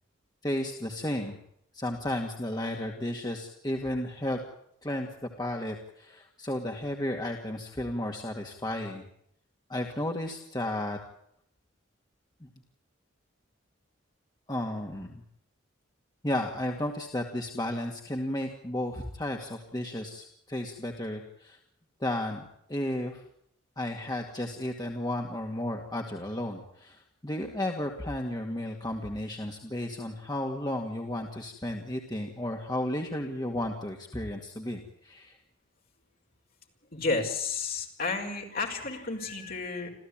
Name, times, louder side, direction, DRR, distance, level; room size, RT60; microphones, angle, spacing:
voice 1, 0.4-1.4 1.7-4.4 4.8-9.1 9.7-11.0 12.4-12.5 14.5-15.2 16.2-21.6 22.0-23.2 23.8-35.4, left 1 dB, 20° left, 1 dB, 2.3 m, -33 dB
voice 2, 36.9-39.9, left 3 dB, 45° left, 2 dB, 5.5 m, -31 dB
27.5 x 15.5 x 8.9 m, 0.72 s
head